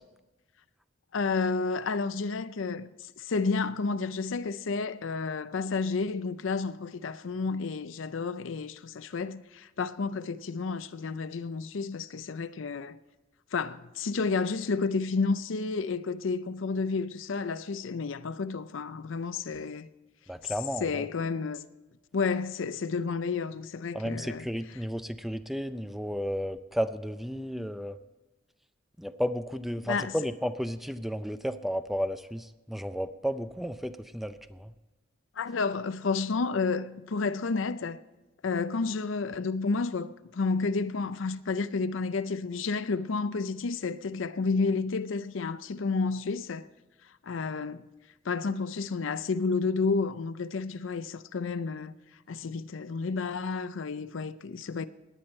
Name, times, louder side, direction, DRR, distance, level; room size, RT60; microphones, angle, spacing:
voice 1, 1.1-2.9 3.2-13.0 13.5-19.9 20.4-20.5 20.8-21.6 22.1-24.4 29.8-30.1 35.4-38.0 38.4-46.7 47.2-47.8 48.3-51.9 52.3-54.9, left 4 dB, 75° left, 0.5 m, -31 dB
voice 2, 20.3-21.1 23.9-28.0 29.0-34.7, equal, ahead, 0.4 m, -33 dB
17.0 x 10.5 x 4.4 m
head